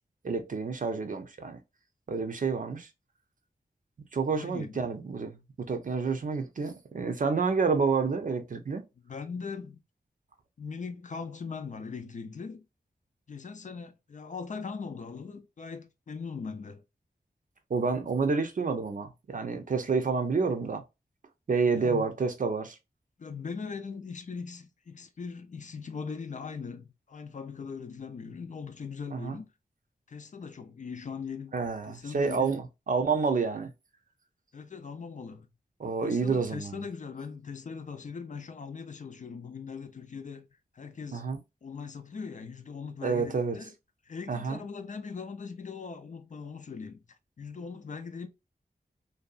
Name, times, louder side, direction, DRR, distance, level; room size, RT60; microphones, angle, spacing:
voice 1, 0.2-1.6 2.1-2.9 4.1-8.8 17.7-20.8 21.5-22.8 29.1-29.4 31.5-33.7 35.8-36.8 41.1-41.4 43.0-43.6 44.3-44.6, right 4 dB, 55° right, 0.5 m, -29 dB
voice 2, 4.2-4.8 9.0-9.8 10.6-12.7 13.3-16.8 21.7-22.1 23.2-29.5 30.1-31.6 31.9-32.5 34.5-35.5 36.0-40.5 40.7-41.3 41.6-43.7 44.1-47.0 47.4-48.3, left 5 dB, 50° left, 0.4 m, -40 dB
2.6 x 2.2 x 2.3 m
wide cardioid pair, 60°, 17 cm